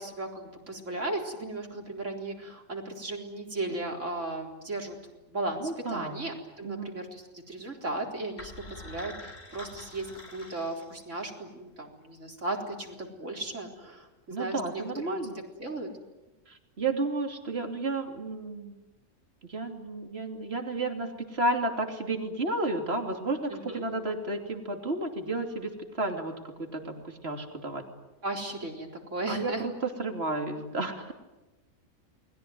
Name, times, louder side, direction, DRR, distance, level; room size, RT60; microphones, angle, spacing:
voice 1, 0.0-5.0 5.3-15.9 23.5-23.9 28.2-29.6, right 2 dB, 65° right, 1 dB, 4.4 m, -36 dB
voice 2, 5.6-6.3 6.6-7.0 14.3-15.4 16.5-18.8 19.5-27.8 29.3-31.1, right 2 dB, 50° right, 4 dB, 3.3 m, -32 dB
sound 1, 8.4-11.4, left 2 dB, 70° left, 4.3 m, -46 dB
29.5 x 21.5 x 9.4 m, 1.1 s
omnidirectional pair, 1.4 m